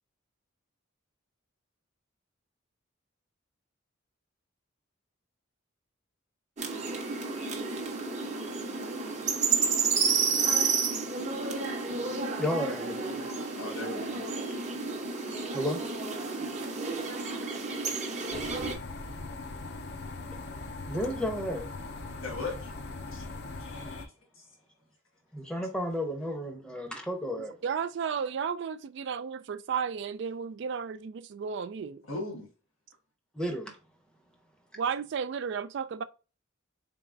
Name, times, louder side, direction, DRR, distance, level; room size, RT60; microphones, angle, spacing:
sound 1, 6.6-18.7, right 5 dB, 35° right, 0.8 m, -31 dB
voice 1, 12.4-13.3 15.5-15.8 20.9-21.7 25.3-27.5 33.3-33.8, equal, 5° left, 0.7 m, -32 dB
voice 2, 13.2-14.3 16.4-16.7 17.2-17.5 22.2-22.7 23.1-23.3 23.6-24.4 32.1-32.5, left 2 dB, 75° left, 1.4 m, -40 dB
sound 2, 18.3-24.1, left 3 dB, 55° left, 0.5 m, -40 dB
voice 3, 27.6-32.0 34.8-36.0, right 6 dB, 60° right, 0.3 m, -33 dB
3.9 x 3.5 x 2.5 m
head